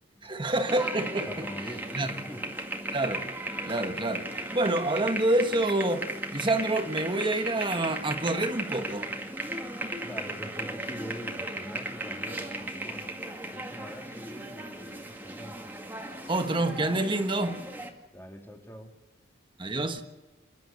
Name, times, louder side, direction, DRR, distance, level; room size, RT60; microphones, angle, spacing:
voice 1, 0.2-1.5 1.9-2.1 2.9-3.2 3.7-4.3 4.5-6.1 6.3-9.1 16.3-17.6 19.6-20.0, right 2 dB, 25° right, 7 dB, 1.4 m, -27 dB
sound 1, 0.7-17.9, right 1 dB, 10° right, 2.1 m, -36 dB
voice 2, 1.3-2.4 10.0-13.1 13.5-15.7 18.1-19.0, equal, 10° left, 3 dB, 2.4 m, -44 dB
28.5 x 11.5 x 8.1 m, 1.2 s
head